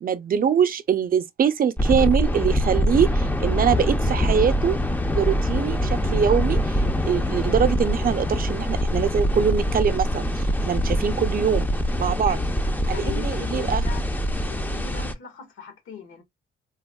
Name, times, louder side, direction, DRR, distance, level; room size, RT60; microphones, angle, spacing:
voice 1, 0.0-4.8 5.1-11.7 12.0-12.4 12.9-13.8, right 8 dB, 45° right, 0.5 m, -23 dB
sound 1, 1.8-15.1, equal, 10° left, 0.4 m, -24 dB
voice 2, 12.9-14.1 14.4-16.2, left 7 dB, 85° left, 1.3 m, -39 dB
3.4 x 2.3 x 2.2 m
cardioid pair, 115°, 21 cm